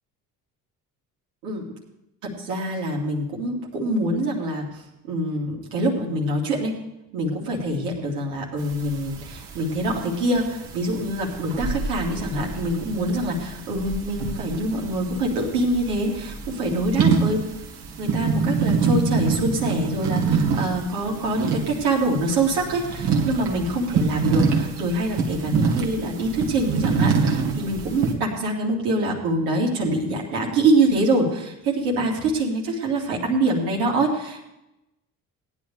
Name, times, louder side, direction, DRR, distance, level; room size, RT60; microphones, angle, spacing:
voice 1, 2.4-4.6 5.1-6.8 7.1-17.4 18.0-34.5, right 1 dB, 70° right, -2 dB, 2.9 m, -25 dB
sound 1, 8.6-28.1, right 5 dB, 50° right, 2.3 m, -26 dB
18.5 x 10.5 x 3.4 m, 0.88 s
figure-of-eight pair, 50°, 49 cm